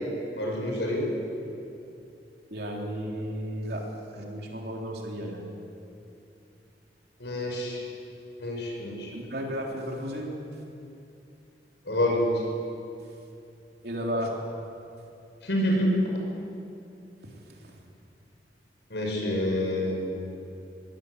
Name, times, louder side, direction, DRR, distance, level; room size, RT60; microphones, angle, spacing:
voice 1, 0.4-1.1 7.2-7.8 8.4-9.1 11.9-12.4 15.4-16.0 18.9-20.0, left 1 dB, 80° left, -1 dB, 6.4 m, -27 dB
voice 2, 2.5-3.9 4.1-5.5 9.1-10.4 13.8-14.3 17.2-17.3 17.6-17.7, equal, 60° right, 0 dB, 3.7 m, -33 dB
21.5 x 17.5 x 8.3 m, 2.6 s
head